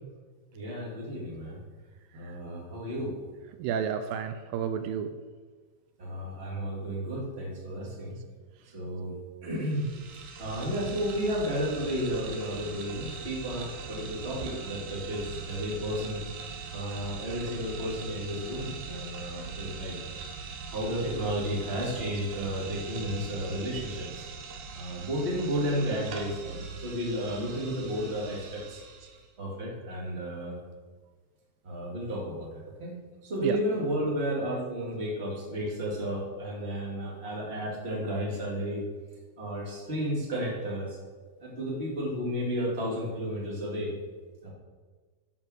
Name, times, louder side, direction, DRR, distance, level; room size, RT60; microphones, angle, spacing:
voice 1, 0.5-1.6 2.1-3.1 6.0-8.1 8.7-9.2 9.4-9.9 10.4-16.2 16.7-20.2 20.7-24.3 24.7-28.8 29.4-30.6 31.6-32.5 32.8-33.0 33.2-38.8 39.4-41.0 41.4-43.9 44.4-44.5, equal, 20° right, -3 dB, 2.2 m, -32 dB
voice 2, 3.6-5.1 14.4-14.5 33.4-33.6 35.6-35.7, right 8 dB, 80° right, 8 dB, 2.2 m, -31 dB
sound 1, 9.6-29.3, right 4 dB, 65° right, 2.2 m, -41 dB
10.5 x 5.7 x 6.3 m, 1.4 s
omnidirectional pair, 4.2 m